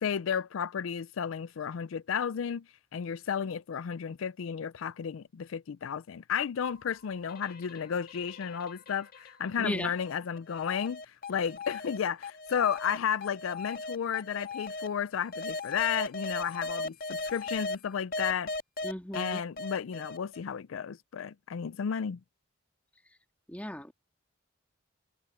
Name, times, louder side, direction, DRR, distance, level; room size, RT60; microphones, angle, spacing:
voice 1, 0.0-2.7 2.9-18.5 19.1-22.2, left 7 dB, 80° left, 0.4 m, -33 dB
sound 1, 6.7-9.5 10.0-14.9 15.3-17.7 18.1-20.4, left 3 dB, 45° left, 1.9 m, -38 dB
voice 2, 9.6-9.9 18.8-19.4 23.5-23.9, left 1 dB, 5° left, 1.9 m, -36 dB
head